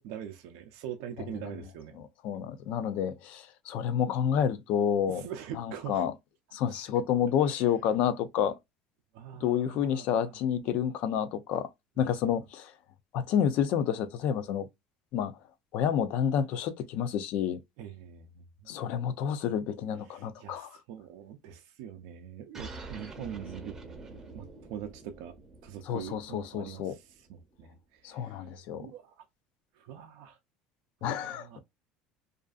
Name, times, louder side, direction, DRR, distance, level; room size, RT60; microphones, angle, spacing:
voice 1, 0.0-2.1 5.1-6.0 6.7-6.8 7.4-7.7 9.1-10.3 10.6-10.8 17.8-18.8 20.1-23.8 24.3-25.3 25.6-28.5 28.8-29.3 29.7-30.4 31.0-31.6, right 9 dB, 75° right, 0.4 m, -43 dB
voice 2, 2.2-5.2 5.6-6.1 6.5-8.5 9.4-11.7 12.0-12.7 13.1-14.7 15.1-15.4 15.7-17.6 18.7-20.8 25.9-27.0 28.0-28.9 31.0-31.6, left 8 dB, 60° left, 0.4 m, -29 dB
sound 1, 22.5-27.6, right 3 dB, 20° right, 0.6 m, -46 dB
2.5 x 2.4 x 2.3 m
cardioid pair, 135°, 3 cm